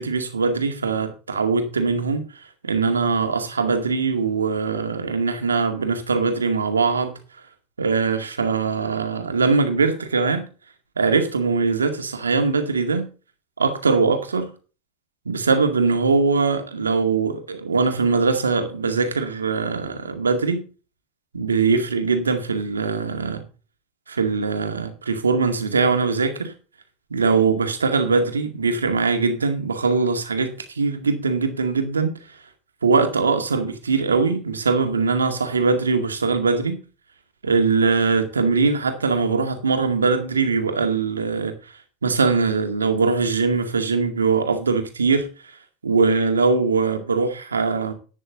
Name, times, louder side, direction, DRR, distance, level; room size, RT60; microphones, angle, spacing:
voice 1, 0.0-2.2 2.6-7.2 7.8-10.5 11.0-13.1 13.6-14.5 15.3-20.6 21.3-23.4 24.1-26.5 27.1-32.1 32.8-36.8 37.4-41.5 42.0-45.3 45.8-47.9, right 4 dB, 85° right, 2.1 m, -21 dB
11.5 x 9.7 x 3.9 m
hypercardioid pair, 85°, 0 cm